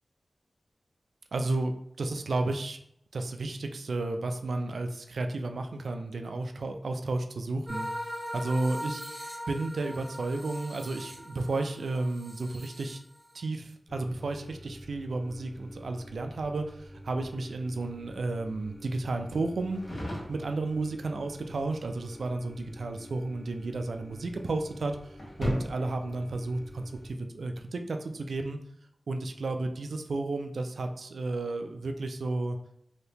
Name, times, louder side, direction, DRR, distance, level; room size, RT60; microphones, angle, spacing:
voice 1, 1.3-1.7 2.0-2.8 3.1-7.9 8.3-9.0 9.5-13.0 13.3-19.8 20.3-28.6 29.1-32.6, right 2 dB, 85° right, 5 dB, 0.3 m, -32 dB
sound 1, 7.7-13.4, equal, 5° right, 0.8 m, -40 dB
sound 2, 13.9-27.1, equal, 55° left, 1.2 m, -43 dB
2.8 x 2.7 x 3.4 m, 0.73 s
wide cardioid pair, 70°, 0 cm